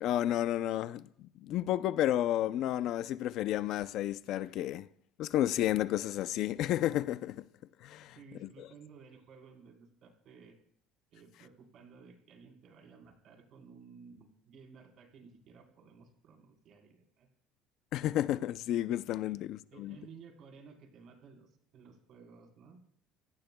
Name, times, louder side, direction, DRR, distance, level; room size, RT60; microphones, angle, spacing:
voice 1, 0.0-4.9 5.2-7.4 7.8-8.2 8.6-8.7 17.9-20.0, left 13 dB, 50° left, 0.5 m, -31 dB
voice 2, 8.1-10.6 11.1-17.3 19.3-19.4 19.7-22.8, right 5 dB, 45° right, 3.9 m, -55 dB
26.5 x 17.0 x 2.3 m
cardioid pair, 170°, 0 cm